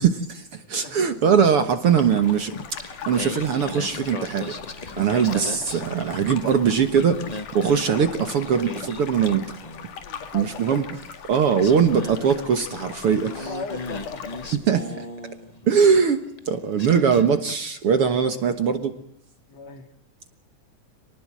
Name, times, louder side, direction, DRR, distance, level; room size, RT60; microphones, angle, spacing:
voice 1, 0.0-2.5 2.8-4.5 5.0-9.6 10.3-13.5 14.7-15.1 15.7-18.9, right 7 dB, 55° right, 9 dB, 1.9 m, -21 dB
sound 1, 1.9-14.6, left 7 dB, 80° left, 3.7 m, -40 dB
Singing, 2.5-6.5 6.8-10.0 11.0-11.1 11.6-15.8 16.4-16.5 16.8-17.6, left 2 dB, 25° left, 0.8 m, -37 dB
voice 2, 5.1-6.0 8.0-8.3 10.0-10.7 11.7-11.8 13.5-14.4 18.3-18.8 19.5-19.9, left 4 dB, 60° left, 7 dB, 3.3 m, -38 dB
28.0 x 19.5 x 7.5 m, 0.67 s
omnidirectional pair, 3.6 m